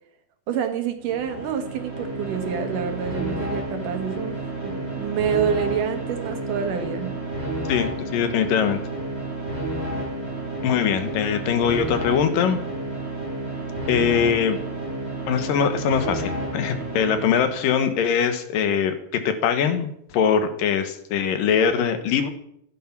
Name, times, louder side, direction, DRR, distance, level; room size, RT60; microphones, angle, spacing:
voice 1, 0.5-7.1, right 8 dB, 70° right, 6 dB, 3.0 m, -27 dB
sound 1, 1.0-17.8, right 1 dB, 15° left, 6.8 m, -31 dB
voice 2, 7.7-8.8 10.6-12.6 13.9-14.6 15.3-22.3, left 7 dB, 75° left, 9 dB, 2.9 m, -22 dB
15.0 x 10.0 x 6.0 m, 0.72 s
omnidirectional pair, 4.0 m